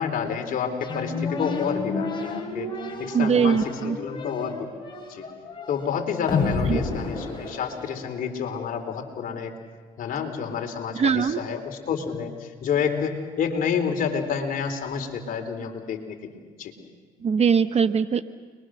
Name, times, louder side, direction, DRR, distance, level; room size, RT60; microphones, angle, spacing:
voice 1, 0.0-3.6 3.8-4.6 5.1-5.3 5.7-9.5 10.0-16.3 16.6-16.7, left 7 dB, 60° left, 4 dB, 4.0 m, -29 dB
sound 1, 0.8-8.3, left 3 dB, 30° left, 6.4 m, -30 dB
voice 2, 3.1-4.0 6.7-6.8 10.9-11.4 17.2-18.2, right 6 dB, 40° right, 11 dB, 1.1 m, -21 dB
30.0 x 23.0 x 6.5 m, 1.5 s
supercardioid pair, 80°, 16 cm